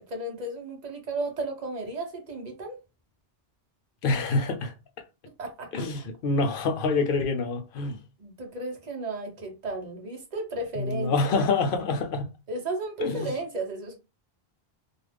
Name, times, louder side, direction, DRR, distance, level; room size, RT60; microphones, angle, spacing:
voice 1, 0.0-2.8 5.4-5.9 8.2-11.5 12.5-14.0, right 2 dB, 45° right, 0.9 m, -34 dB
voice 2, 4.0-4.7 5.7-8.0 10.8-12.3 13.0-13.3, left 3 dB, 65° left, 0.7 m, -26 dB
2.4 x 2.3 x 3.3 m
omnidirectional pair, 1.0 m